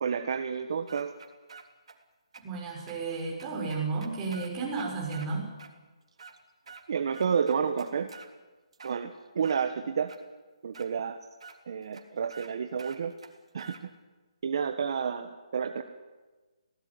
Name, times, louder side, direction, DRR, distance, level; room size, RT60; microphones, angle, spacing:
voice 1, 0.0-1.1 6.9-8.1 8.8-10.1 10.6-11.2 11.7-13.1 13.5-13.7 14.4-15.8, right 6 dB, 50° right, 7 dB, 1.4 m, -30 dB
sound 1, 0.9-2.0 2.3-2.4 2.9-3.0 3.4-5.3 5.6-5.7 6.1-6.8 7.1-8.3 8.7-9.6 10.1-10.2 10.7-10.9 11.4-11.6 11.9-12.0 12.3-12.5 12.8-13.8, right 5 dB, 65° right, 3.4 m, -48 dB
voice 2, 2.4-5.5, right 4 dB, 15° right, -2 dB, 6.0 m, -33 dB
21.0 x 18.0 x 9.7 m, 1.3 s
hypercardioid pair, 165°, 3 cm